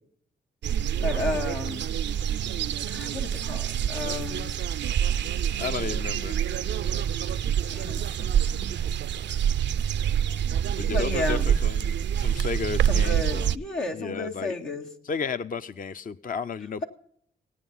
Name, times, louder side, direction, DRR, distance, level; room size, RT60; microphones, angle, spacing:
sound 1, 0.6-13.6, right 9 dB, 70° right, 0.4 m, -26 dB
voice 1, 1.0-1.9 2.9-4.5 7.7-8.7 10.9-11.5 12.8-14.9, left 2 dB, 85° left, -1 dB, 2.1 m, -33 dB
voice 2, 5.6-6.4 10.8-13.5 13.9-14.5 15.0-16.8, left 5 dB, 45° left, 11 dB, 0.6 m, -33 dB
17.5 x 9.3 x 5.5 m, 0.63 s
supercardioid pair, 40°, 19 cm